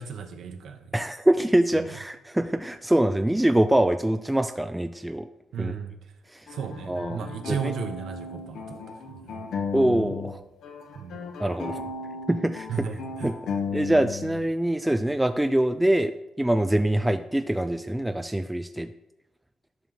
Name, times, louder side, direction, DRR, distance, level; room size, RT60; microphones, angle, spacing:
voice 1, 0.0-0.9 5.5-6.0 6.5-8.8 9.1-9.4 9.9-10.1 10.9-11.2 12.7-13.4, right 6 dB, 70° right, 6 dB, 1.0 m, -34 dB
voice 2, 0.9-5.3 5.6-5.7 6.3-6.5 6.9-7.2 7.5-7.7 9.7-10.4 11.4-11.9 12.3-12.7 13.2-13.4 13.7-16.1 16.4-18.9, right 1 dB, 5° right, 8 dB, 0.3 m, -24 dB
sound 1, 6.5-10.4 10.6-14.4, left 4 dB, 75° left, 1.1 m, -35 dB
11.0 x 5.6 x 3.7 m, 0.88 s
cardioid pair, 90°, 0 cm